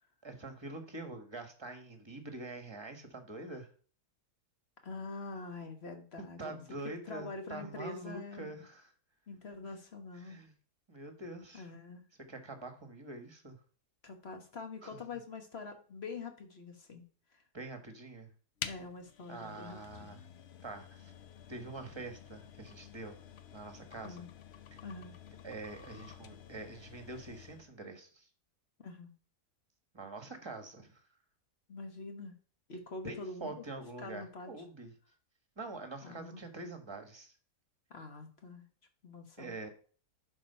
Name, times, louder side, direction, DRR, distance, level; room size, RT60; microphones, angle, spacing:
voice 1, 0.2-3.7 6.4-8.9 10.1-10.5 10.9-11.7 12.3-13.6 14.8-15.0 17.5-18.3 19.3-20.2 20.6-21.1 21.5-23.2 23.5-24.2 25.4-28.3 29.9-31.0 33.0-34.9 35.6-37.3 39.4-39.7, right 2 dB, 20° right, 6 dB, 1.4 m, -45 dB
voice 2, 4.8-6.6 7.0-8.5 9.3-10.4 11.5-12.1 14.0-17.1 17.3-17.4 18.6-20.1 24.0-24.3 24.8-25.1 28.8-29.1 31.7-32.4 32.7-33.6 34.0-34.5 36.0-36.4 37.9-38.7 39.0-39.5, left 3 dB, 45° left, 5 dB, 1.5 m, -45 dB
sound 1, 18.6-27.7, left 9 dB, 60° left, 0.7 m, -49 dB
10.5 x 4.5 x 5.6 m, 0.41 s
omnidirectional pair, 1.7 m